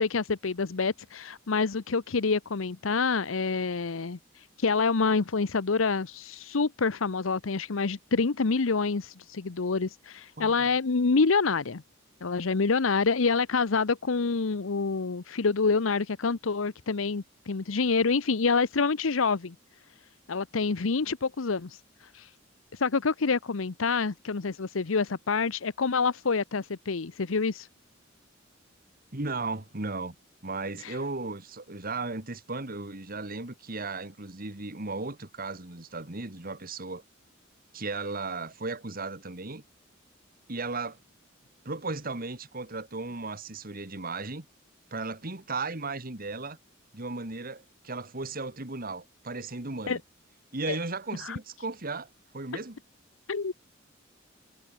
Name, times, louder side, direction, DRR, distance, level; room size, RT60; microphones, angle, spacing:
voice 1, 0.0-4.2 4.6-11.8 12.2-19.5 20.3-21.8 22.1-22.3 22.7-27.7 30.8-31.0 49.9-50.0 50.7-50.8 51.2-51.4 53.3-53.5, left 4 dB, 85° left, 0.8 m, -27 dB
voice 2, 10.4-10.7 29.1-30.2 30.4-37.0 37.7-39.6 40.5-41.0 41.6-44.5 44.9-46.6 46.9-50.0 50.5-52.1 52.3-52.8, right 3 dB, 45° right, 2.2 m, -35 dB
head